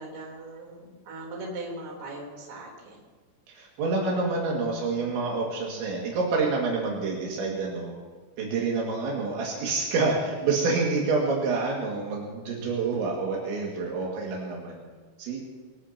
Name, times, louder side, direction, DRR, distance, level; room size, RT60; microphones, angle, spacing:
voice 1, 0.0-3.0, right 2 dB, 50° right, -1 dB, 5.0 m, -39 dB
voice 2, 3.5-7.9 8.4-14.8 15.2-15.4, right 3 dB, 75° right, -2 dB, 4.4 m, -27 dB
24.0 x 16.5 x 2.9 m, 1.5 s
omnidirectional pair, 5.3 m